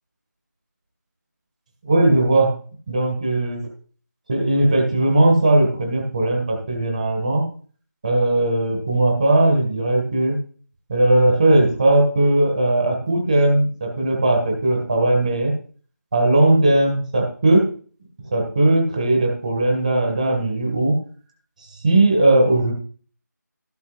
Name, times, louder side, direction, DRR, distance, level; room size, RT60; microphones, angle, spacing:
voice 1, 1.8-2.5 2.9-3.7 4.3-7.5 8.0-10.4 10.9-15.5 16.1-17.7 18.3-21.0 21.8-22.7, right 2 dB, 25° right, 3 dB, 2.1 m, -18 dB
13.0 x 9.3 x 2.6 m, 0.42 s
figure-of-eight pair, 170°, 10 cm